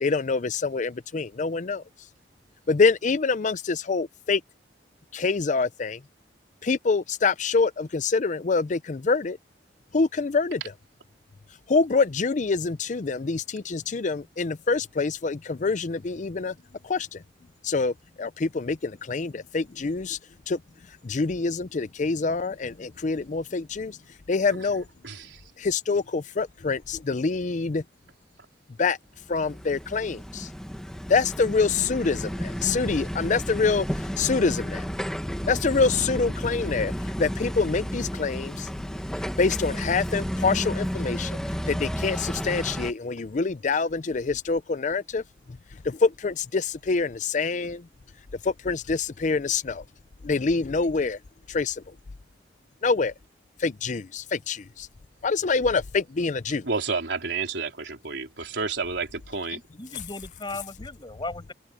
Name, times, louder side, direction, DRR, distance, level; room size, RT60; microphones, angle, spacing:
voice 1, 0.0-1.8 2.7-4.4 5.1-6.0 6.6-9.4 9.9-10.7 11.7-16.5 16.8-17.2 17.6-20.2 20.5-20.6 21.0-24.0 24.3-24.9 25.6-27.8 28.8-29.0 29.3-30.5 31.1-33.9 34.2-34.9 35.5-36.9 37.2-38.7 39.4-41.4 41.7-45.2 45.8-47.9 48.4-49.8 50.2-51.2 51.5-51.8 52.8-53.1 53.6-54.9 55.2-56.6, left 4 dB, 45° left, 0.5 m, -26 dB
voice 2, 25.0-25.4 56.6-59.6, right 4 dB, 85° right, 3.9 m, -30 dB
sound 1, 29.2-42.9, equal, 5° left, 1.3 m, -32 dB
voice 3, 59.5-61.5, left 2 dB, 25° left, 7.7 m, -37 dB
open air
head